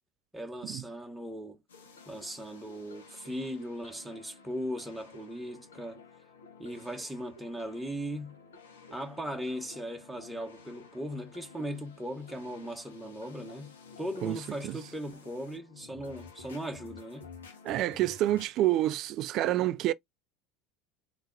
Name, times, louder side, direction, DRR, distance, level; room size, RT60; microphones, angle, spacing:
voice 1, 0.3-1.6 2.1-6.0 6.6-8.4 8.9-17.3, equal, 5° right, 1.1 m, -38 dB
sound 1, 1.7-18.5, left 4 dB, 85° left, 1.1 m, -52 dB
voice 2, 17.6-19.9, right 14 dB, 55° right, 0.4 m, -28 dB
4.0 x 2.9 x 2.5 m
hypercardioid pair, 80°, 0 cm